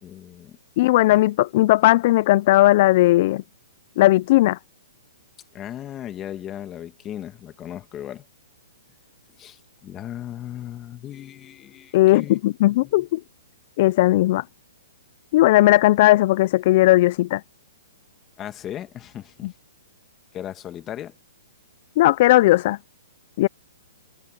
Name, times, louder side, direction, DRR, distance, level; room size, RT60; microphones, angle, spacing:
voice 1, 0.0-0.6 1.0-1.2 5.5-8.3 9.4-12.4 12.7-12.8 18.4-19.5 20.3-21.1, left 11 dB, 20° left, 2.1 m, -37 dB
voice 2, 0.8-3.4 4.0-4.6 11.9-13.2 13.8-14.4 15.3-17.4 22.0-22.8 23.4-23.5, left 17 dB, 40° left, 0.4 m, -17 dB
hypercardioid pair, 155°, 0 cm